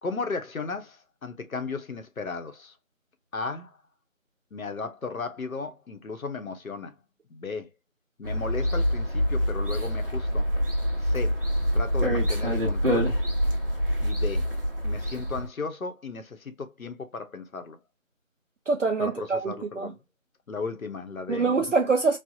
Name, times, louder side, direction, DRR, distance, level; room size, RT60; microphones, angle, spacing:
voice 1, 0.0-2.7 3.3-3.8 4.5-7.0 7.3-7.7 8.2-10.5 11.0-11.4 11.7-13.2 14.0-14.5 14.8-17.8 19.0-20.0 20.5-21.5, left 4 dB, 85° left, 0.8 m, -35 dB
sound 1, 8.2-15.5, equal, 40° right, 0.8 m, -26 dB
voice 2, 18.7-19.9 21.3-22.2, right 4 dB, 65° right, 0.5 m, -25 dB
3.2 x 2.0 x 2.6 m
figure-of-eight pair, 180°, 41 cm